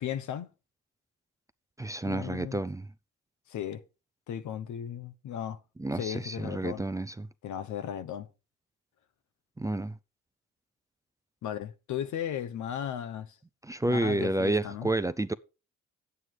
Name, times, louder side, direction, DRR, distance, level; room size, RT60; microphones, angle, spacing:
voice 1, 0.0-0.5 2.1-2.6 3.5-3.8 4.3-5.6 5.9-6.8 7.4-8.3 11.4-13.4 13.9-14.9, left 9 dB, 75° left, 1.1 m, -36 dB
voice 2, 1.8-2.9 5.8-7.3 9.6-10.0 13.6-15.3, right 2 dB, 10° right, 0.5 m, -30 dB
9.3 x 8.3 x 4.7 m
cardioid pair, 90°, 30 cm